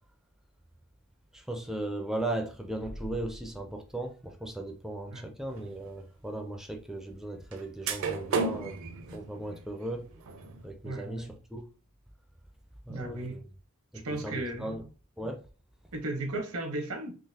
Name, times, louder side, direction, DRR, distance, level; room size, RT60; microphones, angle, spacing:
voice 1, 1.3-8.8 9.1-10.1 10.6-11.7 12.9-13.4 13.9-14.8 15.2-15.4, right 1 dB, ahead, 0.4 m, -37 dB
sound 1, 5.6-5.7 7.5-7.6 7.9-10.6, right 4 dB, 65° right, 0.6 m, -33 dB
voice 2, 10.8-11.3 12.9-13.4 14.0-14.9 15.9-17.2, right 2 dB, 85° right, 0.9 m, -35 dB
3.8 x 3.0 x 2.8 m
head